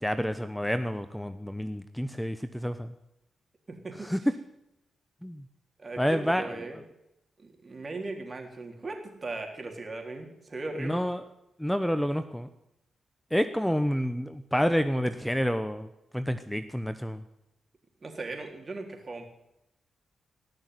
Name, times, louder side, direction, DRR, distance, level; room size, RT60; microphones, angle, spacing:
voice 1, 0.0-2.9 4.0-4.2 5.2-5.4 6.0-6.5 10.8-11.2 11.6-12.5 13.3-15.9 16.1-17.2, equal, 5° left, 10 dB, 0.9 m, -29 dB
voice 2, 5.8-6.8 7.4-11.0 18.0-19.2, right 2 dB, 40° right, 3 dB, 3.7 m, -38 dB
18.5 x 6.4 x 9.5 m, 0.85 s
supercardioid pair, 50°, 0 cm